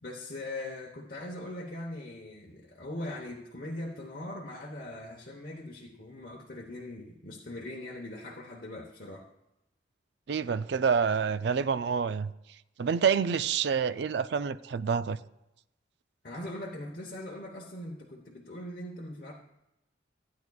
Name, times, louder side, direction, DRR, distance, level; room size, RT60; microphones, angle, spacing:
voice 1, 0.0-9.3 16.2-19.3, left 1 dB, 45° left, 1.1 m, -41 dB
voice 2, 10.3-12.3 12.8-15.2, right 6 dB, 60° right, 0.4 m, -27 dB
15.5 x 9.5 x 2.4 m
head